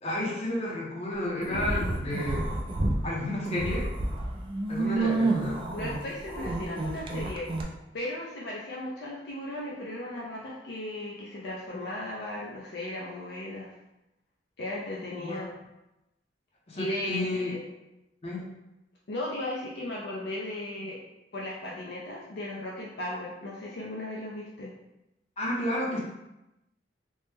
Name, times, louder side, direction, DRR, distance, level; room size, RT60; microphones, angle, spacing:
voice 1, 0.0-2.4 3.0-3.9 4.7-5.5 15.1-15.4 16.7-17.5 18.2-18.4 25.4-26.0, left 1 dB, 35° left, -4 dB, 0.7 m, -31 dB
sound 1, 1.4-3.0 3.4-7.6, right 2 dB, 30° right, 0.3 m, -30 dB
voice 2, 4.8-5.2 5.7-7.5 7.9-13.7 14.6-15.5 16.8-17.6 19.1-21.0 21.3-24.7, left 1 dB, 65° left, -4 dB, 0.5 m, -36 dB
3.0 x 2.1 x 3.3 m, 0.93 s
head